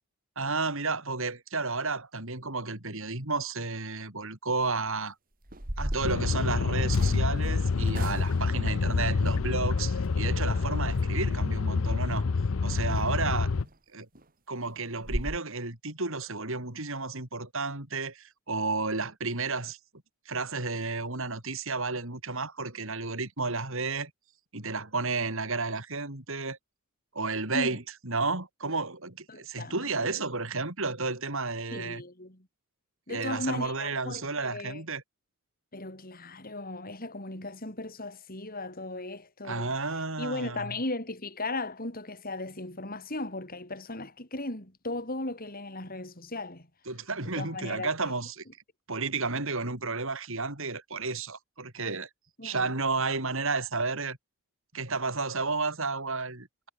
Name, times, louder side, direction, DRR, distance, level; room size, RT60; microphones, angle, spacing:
voice 1, 0.4-5.1 5.8-12.3 12.6-13.5 13.9-14.1 14.5-19.8 20.3-24.1 24.5-26.6 27.1-32.0 33.1-35.0 39.4-40.7 46.9-48.4 48.9-52.1 52.4-54.2 54.7-56.7, right 3 dB, 65° right, 4.1 m, -32 dB
sound 1, 4.6-4.9 5.4-7.2 7.9-8.6 13.1-13.2 13.6-13.8 14.2-14.3 14.6-14.7 15.0-15.4, right 1 dB, 40° right, 3.2 m, -36 dB
sound 2, 6.0-13.7, left 4 dB, 65° left, 0.6 m, -27 dB
voice 2, 29.3-30.1 31.7-32.5 33.1-34.8 35.7-39.7 40.2-46.7 47.2-48.1 52.4-52.7, left 2 dB, 40° left, 6.8 m, -37 dB
head